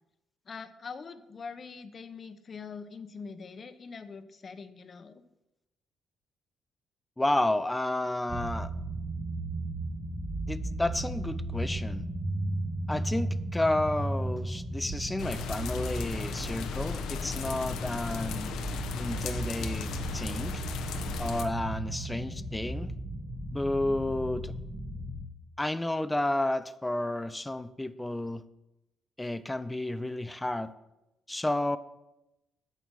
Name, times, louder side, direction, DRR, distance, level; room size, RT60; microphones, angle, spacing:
voice 1, 0.5-5.2, left 5 dB, 45° left, 11 dB, 0.9 m, -43 dB
voice 2, 7.2-8.7 10.5-12.0 12.9-18.6 19.0-20.6 21.2-22.9 23.5-24.5 25.6-28.4 29.2-30.7 31.3-31.8, left 1 dB, 10° left, 14 dB, 0.6 m, -31 dB
sound 1, 8.3-25.3, right 1 dB, 20° right, 1.2 m, -35 dB
sound 2, 15.2-21.5, left 6 dB, 85° left, 0.9 m, -37 dB
9.2 x 6.9 x 6.4 m, 0.93 s
cardioid pair, 90°, 0 cm